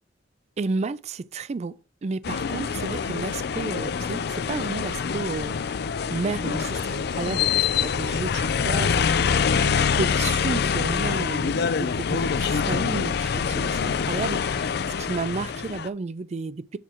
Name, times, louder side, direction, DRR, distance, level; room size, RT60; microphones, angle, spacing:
voice 1, 0.6-1.7 2.0-5.8 6.1-16.8, right 4 dB, 40° right, 0.4 m, -32 dB
sound 1, 2.2-15.9, left 6 dB, 65° left, 0.4 m, -25 dB
8.2 x 4.4 x 4.5 m
head